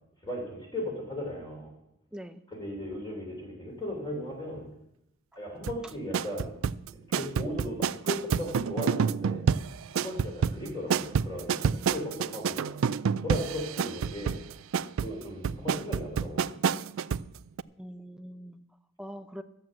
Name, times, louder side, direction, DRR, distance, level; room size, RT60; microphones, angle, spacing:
voice 1, 0.2-1.7 2.5-4.7 5.3-6.5 7.1-9.4 9.9-12.7 13.1-14.4 15.0-16.5, left 1 dB, 20° left, -1 dB, 3.2 m, -37 dB
sound 1, 5.6-17.3 17.6-17.7, right 6 dB, 70° right, 0.3 m, -28 dB
voice 2, 17.8-19.4, equal, 5° right, 8 dB, 0.5 m, -43 dB
13.0 x 7.6 x 7.5 m, 0.83 s
head